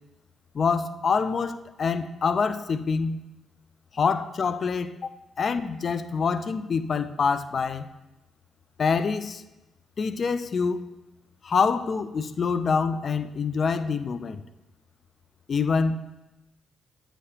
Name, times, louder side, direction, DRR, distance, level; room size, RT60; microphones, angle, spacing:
voice 1, 0.5-3.2 3.9-5.0 5.4-7.9 8.8-9.4 10.0-10.8 11.4-14.4 15.5-16.0, left 5 dB, 45° left, 0.4 m, -26 dB
8.6 x 5.0 x 2.8 m
cardioid pair, 90°, 0 cm